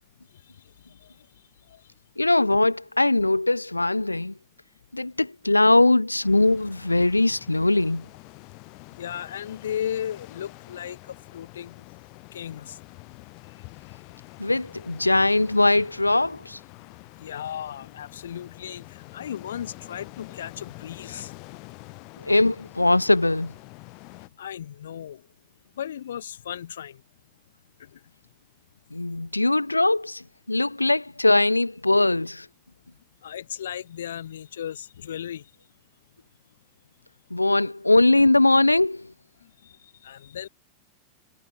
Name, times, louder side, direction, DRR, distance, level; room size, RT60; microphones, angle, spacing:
voice 1, 0.6-1.3 1.7-1.8 8.9-11.9 12.3-12.8 17.2-21.3 24.4-25.2 25.8-27.0 27.8-28.0 33.2-35.5 39.6-40.5, left 10 dB, 65° left, 3.1 m, -36 dB
voice 2, 2.2-4.3 4.9-8.1 14.4-16.6 22.2-23.5 28.9-32.5 37.3-39.1, left 2 dB, 85° left, 0.6 m, -21 dB
sound 1, 6.2-24.3, left 32 dB, 45° left, 1.7 m, -46 dB
figure-of-eight pair, 90°, 0 cm